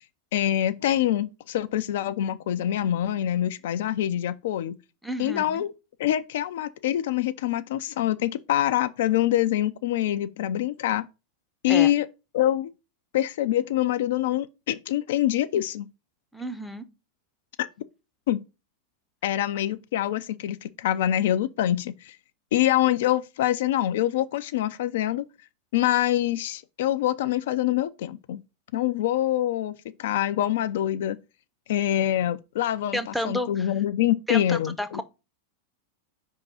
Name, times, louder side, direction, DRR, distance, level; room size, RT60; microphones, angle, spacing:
voice 1, 0.3-4.8 5.2-5.7 6.0-11.1 11.6-12.1 12.3-12.7 13.1-15.9 17.6-17.7 18.3-18.4 19.2-22.2 22.5-25.2 25.7-28.4 28.7-31.2 31.7-33.0 33.2-35.0, left 12 dB, 55° left, 0.3 m, -25 dB
voice 2, 5.0-5.6 11.7-11.9 16.3-16.8 32.9-33.7 34.3-35.0, equal, ahead, 0.6 m, -31 dB
5.2 x 3.6 x 5.6 m
figure-of-eight pair, 90°, 0 cm